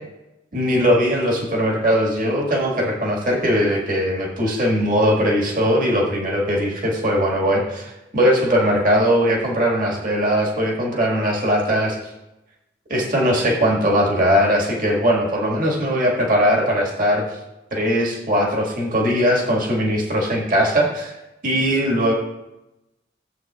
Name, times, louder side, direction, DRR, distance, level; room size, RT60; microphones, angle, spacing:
voice 1, 0.5-12.0 12.9-17.2 17.7-21.1 21.4-22.1, equal, 45° right, -2 dB, 1.8 m, -20 dB
14.5 x 7.8 x 2.4 m, 0.95 s
head